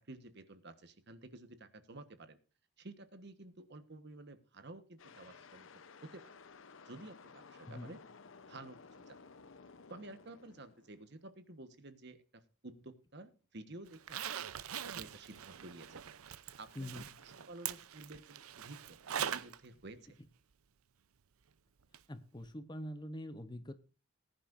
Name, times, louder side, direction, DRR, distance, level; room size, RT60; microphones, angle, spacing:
voice 1, 0.0-2.4 2.8-5.7 6.0-6.4 6.9-8.0 8.5-8.8 9.1-9.2 9.9-14.5 14.8-16.0 16.6-16.9 17.2-20.0, right 2 dB, 50° right, 11 dB, 1.3 m, -52 dB
sound 1, 5.0-11.3, left 4 dB, 65° left, 0.8 m, -56 dB
voice 2, 7.7-8.0 16.7-17.3 22.1-23.7, left 1 dB, 20° left, 12 dB, 0.8 m, -45 dB
Zipper (clothing), 13.9-19.6 19.9-20.0 21.9-22.0 22.4-22.5, right 9 dB, 85° right, 0.6 m, -42 dB
19.5 x 10.5 x 2.6 m, 0.33 s
head